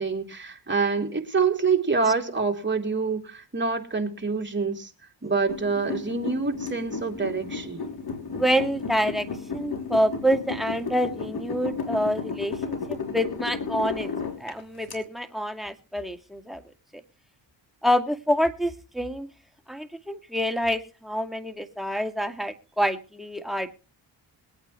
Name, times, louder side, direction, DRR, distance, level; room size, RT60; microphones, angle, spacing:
voice 1, 0.0-4.9 5.2-7.9, right 4 dB, 25° right, 3 dB, 3.2 m, -26 dB
sound 1, 5.5-14.9, left 4 dB, 55° left, 3.1 m, -33 dB
voice 2, 8.3-9.3 9.5-14.1 14.4-16.6 17.8-19.3 19.7-23.7, equal, ahead, 8 dB, 1.9 m, -27 dB
21.5 x 8.9 x 3.1 m, 0.37 s
cardioid pair, 65°, 45 cm